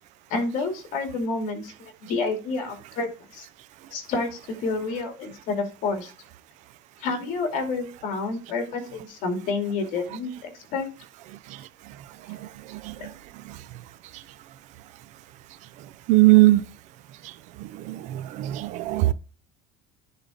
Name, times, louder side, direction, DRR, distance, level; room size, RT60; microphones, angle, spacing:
voice 1, 0.3-3.5 3.9-6.1 7.0-10.9 13.0-13.1, left 3 dB, 60° left, 2.4 m, -29 dB
voice 2, 16.1-16.6 17.9-19.1, right 19 dB, 55° right, 0.5 m, -19 dB
10.0 x 4.0 x 5.0 m
cardioid pair, 165°, 15 cm